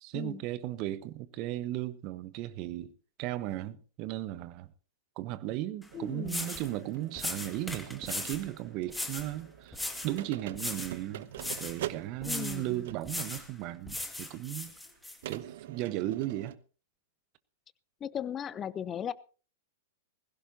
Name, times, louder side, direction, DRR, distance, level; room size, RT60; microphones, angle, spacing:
voice 1, 0.0-2.9 3.2-4.7 5.2-9.8 10.0-11.3 11.6-14.7 15.3-16.5, right 14 dB, 40° right, 1.2 m, -36 dB
sound 1, 5.8-5.9 6.3-6.7 7.2-8.5 8.9-9.3 9.7-10.2 10.5-11.0 11.4-11.8 12.2-12.6 13.1-13.5 13.9-15.2, left 2 dB, 5° left, 2.0 m, -37 dB
voice 2, 5.9-6.5 12.2-12.8 18.0-19.1, left 9 dB, 25° left, 0.7 m, -37 dB
sound 2, 5.9-13.2 14.1-14.2 15.2-16.6, right 13 dB, 55° right, 0.9 m, -44 dB
20.5 x 16.5 x 2.8 m
figure-of-eight pair, 100°, 0 cm